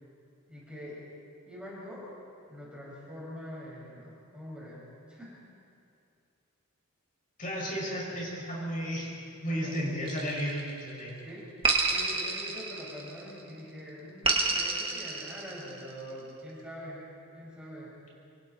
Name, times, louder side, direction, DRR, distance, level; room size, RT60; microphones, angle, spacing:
voice 1, 0.5-1.0 1.5-2.1 2.5-4.8 5.1-5.3 9.5-9.8 11.2-17.1 17.3-18.0, equal, 5° right, -6 dB, 5.6 m, -44 dB
voice 2, 7.4-9.1 9.4-11.1, equal, 40° left, -4 dB, 6.7 m, -33 dB
sound 1, 10.1-10.9 11.6-13.3 14.2-15.9, right 3 dB, 25° right, 2.1 m, -29 dB
28.0 x 25.0 x 4.5 m, 2.5 s
head